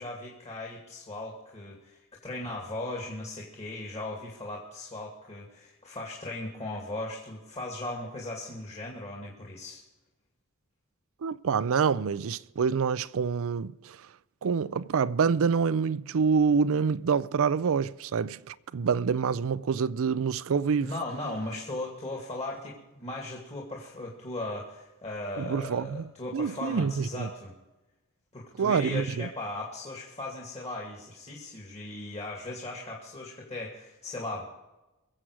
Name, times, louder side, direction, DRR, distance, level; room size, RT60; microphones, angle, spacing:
voice 1, 0.0-9.8 20.8-27.5 28.3-34.5, left 2 dB, 30° left, 2.3 m, -38 dB
voice 2, 11.2-14.0 14.4-20.9 25.4-26.0 26.3-27.3 28.6-29.3, right 6 dB, 65° right, 0.4 m, -26 dB
22.5 x 7.7 x 4.8 m
head